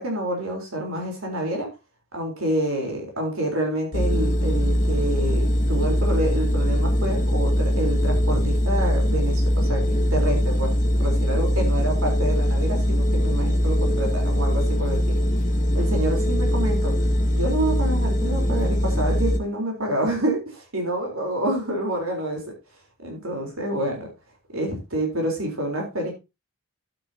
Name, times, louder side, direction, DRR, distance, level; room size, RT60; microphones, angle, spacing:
voice 1, 0.0-1.7 2.1-10.7 11.0-15.2 15.7-16.9 17.3-22.4 23.0-24.1 24.5-26.1, right 1 dB, 70° right, 1 dB, 3.8 m, -28 dB
sound 1, 3.9-19.4, equal, 35° left, 1.0 m, -21 dB
11.5 x 8.6 x 2.8 m, 0.24 s
head